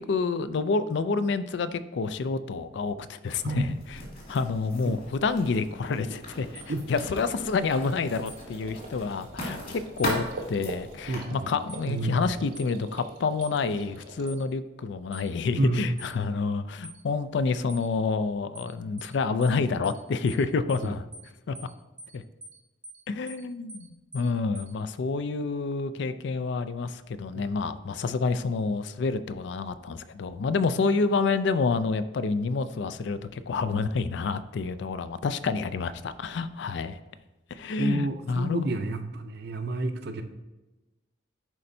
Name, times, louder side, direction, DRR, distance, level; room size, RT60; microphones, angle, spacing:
voice 1, 0.0-4.0 4.3-6.6 6.9-21.0 21.5-21.6 22.1-22.2 23.1-23.9 24.1-37.0 37.5-38.6, left 4 dB, 65° left, 13 dB, 0.4 m, -28 dB
Writing, 3.3-11.2, equal, 50° left, 2.3 m, -39 dB
voice 2, 3.4-3.7 4.8-5.0 6.7-6.8 11.1-11.5 11.9-12.2 15.6-15.9 20.8-20.9 27.3-27.5 37.8-40.2, right 2 dB, 60° right, 7 dB, 0.6 m, -30 dB
sound 1, 5.9-14.3, right 2 dB, 85° right, 1.1 m, -45 dB
sound 2, 6.5-6.7 8.3-8.4 10.0-10.1 11.7-11.9 12.5-12.7 13.4-13.6 14.3-14.4 15.1-15.3 16.0-16.1 16.8-17.0 17.7-17.9 18.5-18.7 19.0-19.1 19.4-19.6 19.8-20.0 20.3-20.4 20.7-20.9 21.1-21.3 21.5-21.7 22.0-22.1 22.4-22.6 22.8-23.0 23.3-23.4 23.7-23.9 24.1-24.3 24.5-24.7, equal, 10° right, 0.6 m, -45 dB
11.0 x 4.3 x 2.7 m, 1.1 s
head